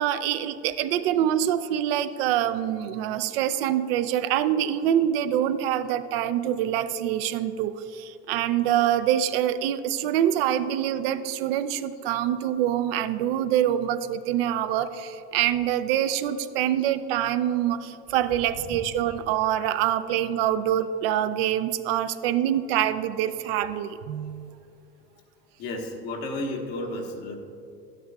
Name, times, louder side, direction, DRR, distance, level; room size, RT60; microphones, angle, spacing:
voice 1, 0.0-24.5, right 11 dB, 85° right, 12 dB, 0.5 m, -25 dB
voice 2, 25.6-27.4, left 1 dB, 80° left, 1 dB, 1.3 m, -33 dB
11.5 x 9.2 x 2.3 m, 2.6 s
supercardioid pair, 105°, 29 cm